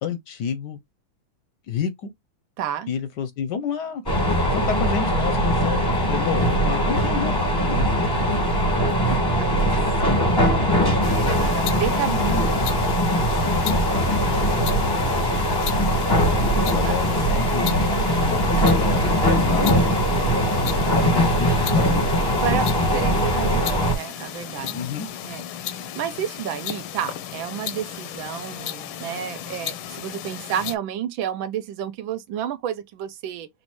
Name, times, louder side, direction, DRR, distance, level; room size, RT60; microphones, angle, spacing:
voice 1, 0.0-0.8 1.7-2.1 2.9-4.0 4.5-7.8 12.1-12.4 13.4-13.6 14.2-14.7 16.7-17.7 18.2-20.0 20.9-23.1 24.7-25.1, left 6 dB, 70° left, 1.1 m, -30 dB
voice 2, 2.6-2.9 9.2-12.5 16.7-17.1 22.4-24.8 25.2-33.5, right 9 dB, 75° right, 1.3 m, -31 dB
sound 1, 4.1-24.0, equal, 15° left, 0.8 m, -21 dB
sound 2, 11.0-30.8, left 11 dB, 90° left, 1.5 m, -34 dB
6.2 x 2.6 x 3.0 m
omnidirectional pair, 2.2 m